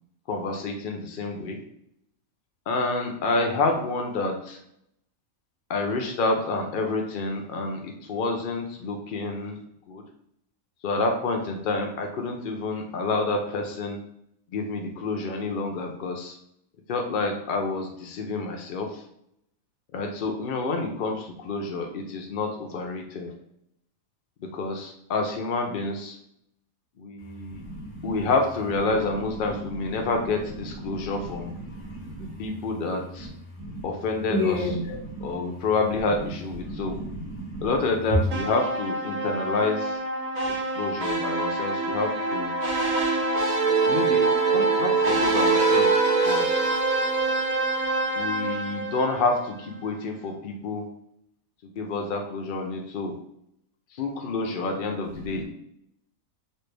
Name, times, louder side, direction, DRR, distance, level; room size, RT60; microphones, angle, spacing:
voice 1, 0.3-1.6 2.7-4.6 5.7-9.6 9.9-10.0 10.8-14.0 14.5-16.4 16.9-19.0 19.9-23.3 24.5-26.2 27.0-27.6 28.0-31.5 32.4-33.3 33.8-34.8 35.2-37.0 37.6-40.0 40.5-42.6 43.9-45.9 46.2-46.4 48.2-50.8 51.6-53.2 53.9-55.4, left 3 dB, 80° left, 2 dB, 0.4 m, -28 dB
voice 2, 27.5-28.2 30.9-31.1 31.5-32.3 33.2-33.3 33.6-33.8 34.3-35.3 36.6-37.7, left 1 dB, 35° left, -4 dB, 1.2 m, -32 dB
sound 1, 38.3-49.5, right 3 dB, 85° right, 1.2 m, -24 dB
3.2 x 2.4 x 3.2 m, 0.73 s
omnidirectional pair, 1.5 m